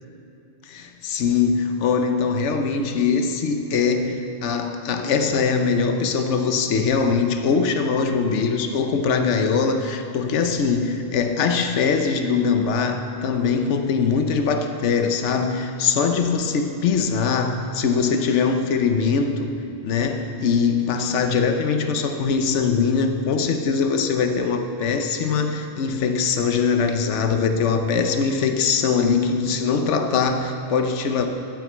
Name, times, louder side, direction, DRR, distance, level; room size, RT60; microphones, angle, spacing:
voice 1, 0.6-19.5 19.8-31.3, left 5 dB, 65° left, 6 dB, 1.1 m, -22 dB
9.5 x 9.3 x 8.0 m, 2.8 s
omnidirectional pair, 1.3 m